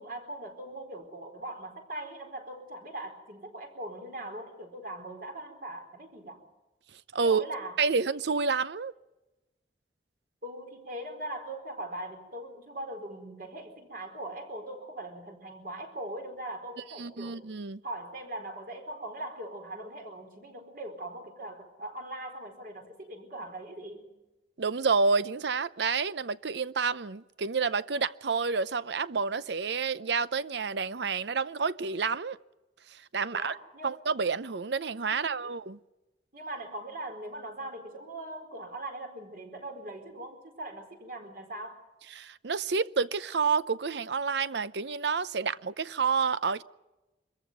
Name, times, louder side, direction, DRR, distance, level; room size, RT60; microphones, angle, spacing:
voice 1, 0.0-6.4 7.2-7.7 10.4-17.4 17.8-24.2 33.3-33.9 35.1-35.5 36.3-41.8, right 1 dB, 50° right, 4.3 m, -41 dB
voice 2, 7.1-7.4 7.8-8.9 17.0-17.8 24.6-32.4 32.9-33.5 33.8-35.8 42.1-46.6, right 5 dB, 75° right, 0.7 m, -29 dB
25.0 x 15.0 x 9.4 m
head